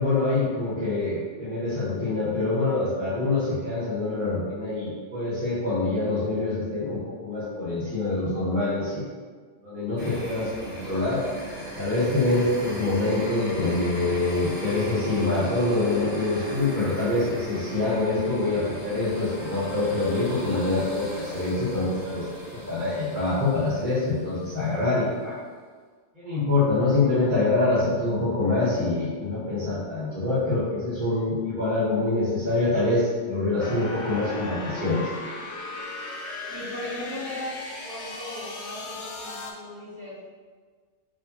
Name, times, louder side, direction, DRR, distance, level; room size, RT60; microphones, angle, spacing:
voice 1, 0.0-9.1 9.6-11.2 11.7-22.2 22.5-25.3 26.1-35.1, left 2 dB, 45° right, -13 dB, 1.4 m, -25 dB
sound 1, 10.0-24.7, right 1 dB, 60° right, 1.3 m, -37 dB
sound 2, 33.6-39.5, left 2 dB, 75° left, 0.9 m, -37 dB
voice 2, 36.5-37.5 37.8-40.2, left 1 dB, 15° left, -13 dB, 1.4 m, -37 dB
4.8 x 2.8 x 2.8 m, 1.6 s
omnidirectional pair, 1.2 m